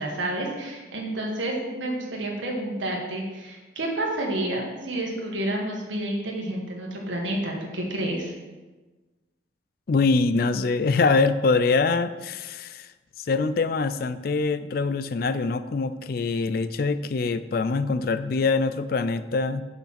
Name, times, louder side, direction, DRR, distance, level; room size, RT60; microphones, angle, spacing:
voice 1, 0.0-8.3, right 1 dB, 80° right, -1 dB, 1.7 m, -29 dB
voice 2, 9.9-12.9 13.2-19.6, left 4 dB, 50° left, 12 dB, 0.4 m, -24 dB
6.7 x 5.7 x 5.8 m, 1.2 s
head